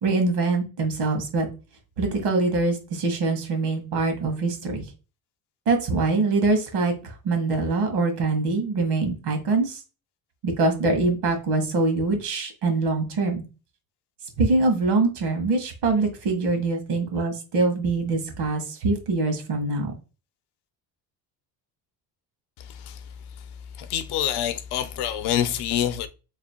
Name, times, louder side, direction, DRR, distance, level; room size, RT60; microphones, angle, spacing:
voice 1, 0.0-1.5 2.0-4.8 5.6-9.8 10.4-13.4 14.4-19.9, right 3 dB, 75° right, 1.6 m, -24 dB
voice 2, 23.8-26.1, left 10 dB, 70° left, 0.7 m, -26 dB
3.2 x 2.7 x 4.3 m
cardioid pair, 160°, 40 cm